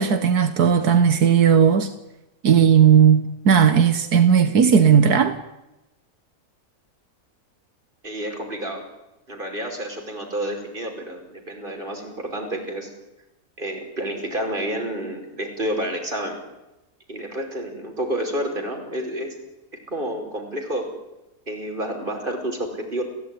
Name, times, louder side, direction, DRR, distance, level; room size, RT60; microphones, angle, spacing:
voice 1, 0.0-1.9 2.4-5.4, right 7 dB, 85° right, 1.9 m, -16 dB
voice 2, 8.0-8.8 9.3-12.9 13.6-16.4 17.1-19.3 19.9-20.9 21.5-23.0, right 1 dB, 35° right, 5.5 m, -29 dB
29.5 x 16.0 x 9.8 m
omnidirectional pair, 1.6 m